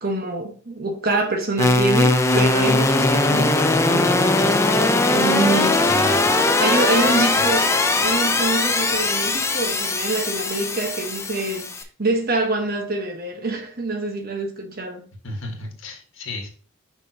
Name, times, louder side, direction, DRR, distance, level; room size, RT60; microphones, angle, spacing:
voice 1, 0.0-5.8 6.6-7.7 8.0-15.1, right 2 dB, 45° right, 1.1 m, -25 dB
sound 1, 1.6-11.8, left 2 dB, 15° left, 0.4 m, -20 dB
voice 2, 5.9-6.3 7.0-7.5 15.2-16.5, left 2 dB, 60° left, 1.6 m, -33 dB
6.1 x 5.5 x 2.8 m
head